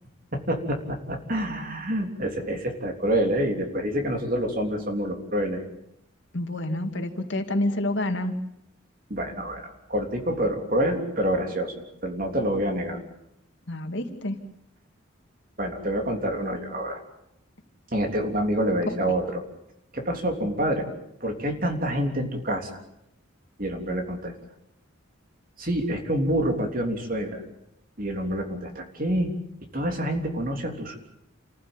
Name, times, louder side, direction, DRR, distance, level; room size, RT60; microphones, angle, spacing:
voice 1, 0.3-5.6 9.1-11.7 12.0-13.0 15.6-17.0 17.9-19.4 19.9-20.9 21.2-22.7 23.6-24.3 25.6-27.4 28.0-29.3 29.7-31.0, right 1 dB, 45° right, 4 dB, 3.4 m, -27 dB
voice 2, 6.3-8.3 13.7-14.4, left 1 dB, 60° left, 6 dB, 2.4 m, -28 dB
29.0 x 15.0 x 8.8 m, 0.80 s
head